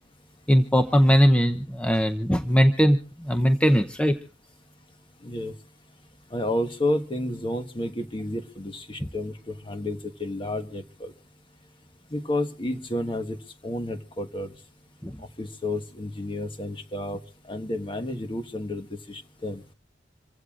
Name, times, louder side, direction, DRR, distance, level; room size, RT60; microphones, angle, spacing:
voice 1, 0.5-4.1 15.0-15.2, equal, 5° left, 7 dB, 0.7 m, -20 dB
voice 2, 5.2-5.5 6.3-11.1 12.1-13.4 13.6-14.5 15.4-17.2 17.5-19.6, left 1 dB, 30° left, 7 dB, 1.3 m, -31 dB
27.0 x 16.0 x 2.5 m, 0.36 s
head